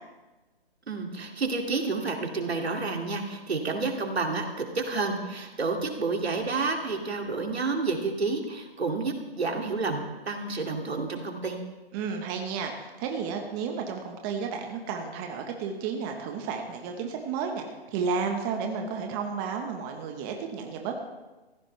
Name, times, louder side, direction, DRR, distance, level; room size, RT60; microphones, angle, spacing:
voice 1, 0.9-11.6, right 3 dB, 85° right, 2 dB, 2.5 m, -30 dB
voice 2, 11.9-21.0, right 5 dB, 20° right, 3 dB, 1.2 m, -32 dB
18.0 x 15.5 x 3.3 m, 1.2 s
hypercardioid pair, 145°, 31 cm